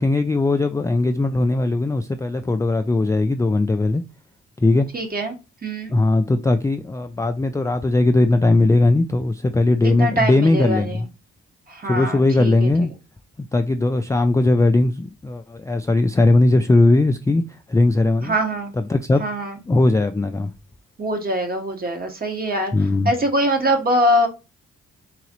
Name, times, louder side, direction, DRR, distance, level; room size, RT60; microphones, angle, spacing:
voice 1, 0.0-4.0 4.6-4.9 5.9-11.1 11.9-12.9 13.5-17.4 17.7-18.3 18.7-19.3 19.7-20.5 22.7-23.1, left 2 dB, 10° left, 0.3 m, -19 dB
voice 2, 4.9-5.3 5.6-5.9 9.8-11.0 11.7-12.7 18.2-18.7 19.2-19.6 21.0-22.7 23.0-24.3, equal, 30° right, 1.3 m, -23 dB
3.9 x 3.8 x 3.0 m
supercardioid pair, 65°, 29 cm